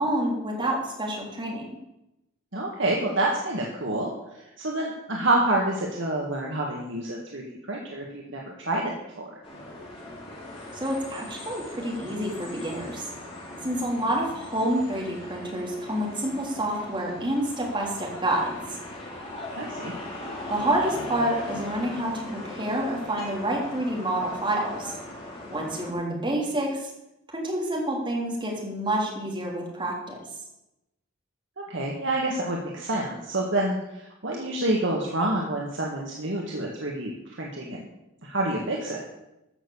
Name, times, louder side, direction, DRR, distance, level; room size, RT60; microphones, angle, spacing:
voice 1, 0.0-1.6 10.8-13.0 13.6-18.8 20.5-25.0 25.5-26.9 27.3-30.2, right 1 dB, 25° right, -2 dB, 3.4 m, -28 dB
voice 2, 2.5-9.3 19.6-19.9 26.1-26.3 31.6-37.9 38.2-39.0, right 1 dB, 60° right, -2 dB, 1.8 m, -28 dB
sound 1, 9.4-25.9, left 1 dB, 30° left, 3.1 m, -39 dB
14.0 x 6.6 x 7.1 m, 0.90 s
head